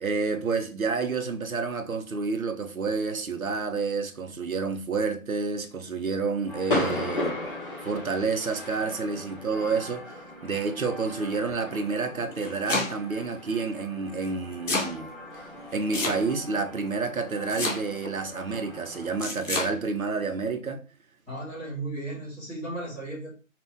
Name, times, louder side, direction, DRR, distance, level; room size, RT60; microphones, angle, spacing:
voice 1, 0.0-7.3 7.8-10.2 10.4-15.1 15.7-20.8, right 4 dB, 85° right, 1.0 m, -29 dB
sound 1, 6.5-19.2, left 2 dB, 40° left, 2.0 m, -37 dB
Domestic sounds home sounds, 12.2-13.2 14.2-14.9 15.9-16.5 17.5-18.1 19.2-19.7, left 2 dB, 60° left, 2.1 m, -29 dB
voice 2, 21.3-23.4, right 2 dB, 5° left, 1.9 m, -35 dB
6.0 x 2.6 x 3.4 m
figure-of-eight pair, 170°, 41 cm